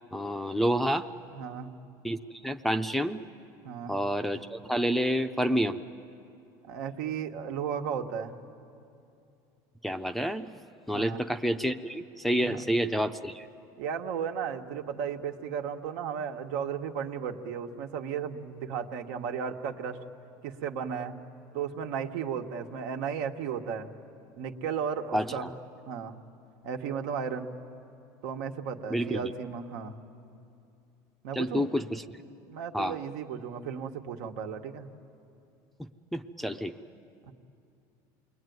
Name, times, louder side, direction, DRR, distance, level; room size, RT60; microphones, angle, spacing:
voice 1, 0.1-1.1 2.0-3.2 3.9-5.8 9.8-10.6 10.9-13.5 25.1-25.5 28.9-29.3 31.3-32.0 32.7-33.0 36.1-36.7, equal, ahead, 5 dB, 0.5 m, -29 dB
voice 2, 1.3-1.7 3.6-3.9 6.6-8.4 10.9-11.2 12.4-12.6 13.8-20.0 20.4-21.1 21.5-23.9 24.4-25.5 25.9-26.2 26.6-27.5 28.2-30.0 31.2-31.7 32.5-34.9 37.3-37.4, right 7 dB, 80° right, 5 dB, 1.4 m, -34 dB
28.5 x 21.5 x 9.4 m, 2.6 s
cardioid pair, 150°, 10 cm